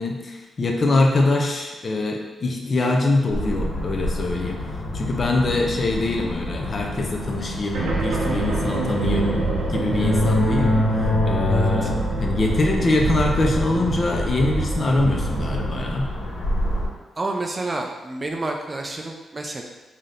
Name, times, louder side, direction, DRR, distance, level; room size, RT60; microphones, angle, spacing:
voice 1, 0.0-4.6 4.9-16.1, left 2 dB, 35° left, 1 dB, 0.5 m, -23 dB
sound 1, 3.3-16.9, left 1 dB, 85° left, 1.3 m, -27 dB
sound 2, 7.7-15.8, right 2 dB, 80° right, 0.7 m, -27 dB
voice 2, 11.5-11.9 17.2-19.6, right 2 dB, 25° right, 2 dB, 0.3 m, -29 dB
3.4 x 2.7 x 3.7 m, 1.2 s
wide cardioid pair, 130°, 0 cm